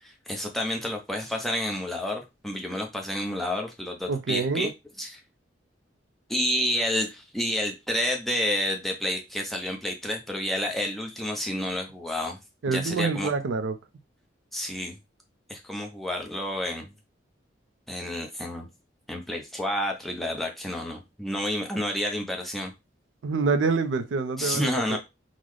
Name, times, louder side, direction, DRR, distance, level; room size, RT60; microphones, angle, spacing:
voice 1, 0.0-4.7 5.0-5.2 6.3-12.4 12.7-13.3 14.5-15.0 15.5-16.9 17.9-18.7 19.1-22.7 24.4-25.0, left 1 dB, ahead, 0.5 m, -30 dB
voice 2, 4.1-4.7 12.6-13.8 23.2-25.0, right 4 dB, 90° right, 0.4 m, -26 dB
3.8 x 2.0 x 3.1 m
head